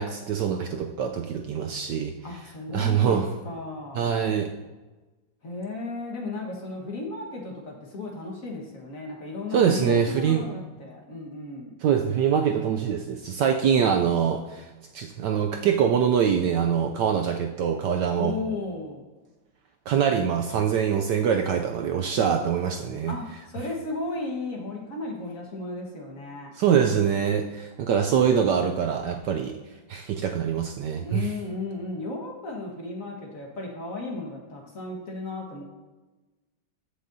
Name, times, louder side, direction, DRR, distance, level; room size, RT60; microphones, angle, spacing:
voice 1, 0.0-2.1 2.7-3.3 3.9-4.5 9.5-10.4 11.8-14.7 14.9-18.3 19.9-23.2 26.5-29.6 29.9-31.3, right 7 dB, 75° right, 4 dB, 1.0 m, -24 dB
voice 2, 2.2-4.2 5.4-11.7 18.1-19.0 23.1-26.5 31.0-35.6, left 2 dB, 45° left, -1 dB, 1.7 m, -35 dB
14.5 x 6.6 x 2.7 m, 1.2 s
omnidirectional pair, 2.2 m